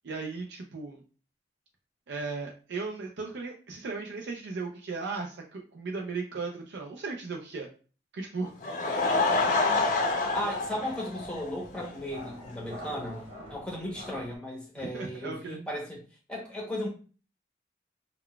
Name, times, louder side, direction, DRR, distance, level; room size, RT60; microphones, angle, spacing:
voice 1, 0.0-1.0 2.1-7.7 8.1-8.5 14.8-15.6, right 4 dB, 90° right, 1 dB, 0.4 m, -36 dB
Laughter / Crowd, 8.4-11.9 12.2-12.3 12.9-13.0 13.1-13.2, left 3 dB, 45° left, 0.5 m, -27 dB
sound 1, 8.9-14.4, equal, 35° right, 0.9 m, -46 dB
voice 2, 10.3-13.2 13.5-16.0 16.3-16.9, left 1 dB, 5° left, -2 dB, 0.8 m, -35 dB
3.8 x 2.1 x 2.2 m, 0.37 s
head